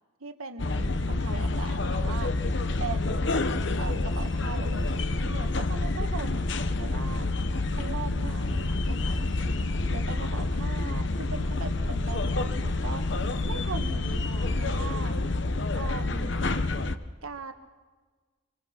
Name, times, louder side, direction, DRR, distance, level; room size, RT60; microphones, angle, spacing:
voice 1, 0.2-2.3 2.8-3.4 3.7-7.3 7.7-9.4 9.9-13.1 13.5-15.2 15.7-16.4 17.2-17.5, right 4 dB, 85° right, 7 dB, 1.6 m, -40 dB
sound 1, 0.6-17.0, left 2 dB, 55° left, 0.9 m, -28 dB
26.5 x 24.0 x 5.9 m, 1.4 s
head